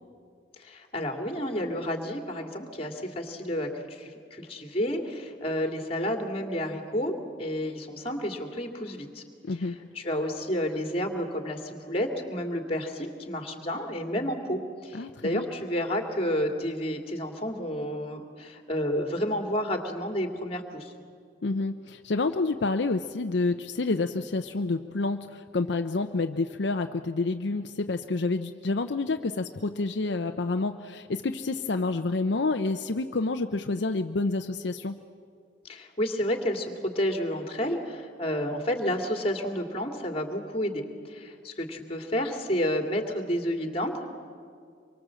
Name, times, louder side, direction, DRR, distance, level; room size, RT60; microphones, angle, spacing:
voice 1, 0.6-7.1 7.4-9.2 9.6-11.6 11.8-20.9 35.7-40.8 41.1-44.1, equal, 35° left, 4 dB, 2.4 m, -30 dB
voice 2, 14.9-15.5 21.4-35.0, left 3 dB, 75° left, 6 dB, 0.7 m, -28 dB
25.5 x 23.5 x 7.6 m, 2.2 s
head